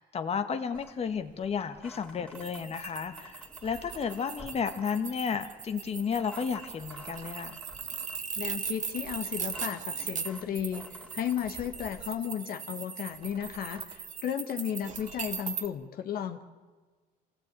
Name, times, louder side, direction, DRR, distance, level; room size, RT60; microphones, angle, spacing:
voice 1, 0.0-7.6, left 6 dB, 35° left, 8 dB, 1.4 m, -33 dB
sound 1, 0.7-11.5, left 1 dB, 5° left, 2.6 m, -53 dB
sound 2, 2.3-15.7, right 7 dB, 45° right, 1.7 m, -39 dB
sound 3, 3.5-4.2 6.5-7.6 8.7-9.7 11.4-12.2 13.1-14.0 14.8-15.4, right 3 dB, 30° right, 2.0 m, -52 dB
voice 2, 8.4-16.4, left 9 dB, 60° left, 7 dB, 1.4 m, -34 dB
26.0 x 16.5 x 9.0 m, 1.4 s
cardioid pair, 110°, 17 cm